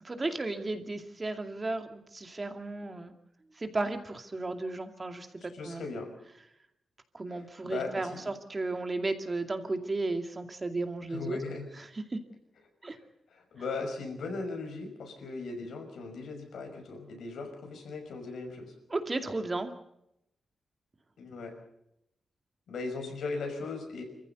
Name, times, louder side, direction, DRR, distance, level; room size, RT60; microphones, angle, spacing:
voice 1, 0.0-3.1 3.5-5.8 7.1-11.4 11.9-12.2 12.8-13.0 18.9-19.7, right 2 dB, 25° right, 6 dB, 2.3 m, -34 dB
voice 2, 5.5-6.1 7.6-8.3 11.1-11.7 12.9-13.0 13.3-18.7 21.2-21.6 22.7-24.0, left 3 dB, 85° left, 4 dB, 5.7 m, -38 dB
26.5 x 15.0 x 8.1 m, 0.80 s
wide cardioid pair, 110°, 0 cm